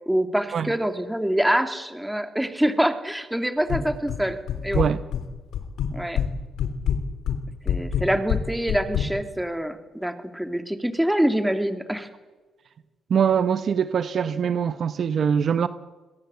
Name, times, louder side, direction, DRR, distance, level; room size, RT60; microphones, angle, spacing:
voice 1, 0.1-4.4 4.6-4.8 5.9-6.2 7.7-12.1, right 1 dB, 5° right, 2.7 m, -25 dB
sound 1, 3.7-4.2 4.5-5.2 5.5-6.3 6.6-9.1, left 9 dB, 80° left, 3.2 m, -25 dB
voice 2, 13.1-15.7, right 7 dB, 55° right, 1.0 m, -23 dB
25.5 x 22.0 x 8.2 m
cardioid pair, 90°, 0 cm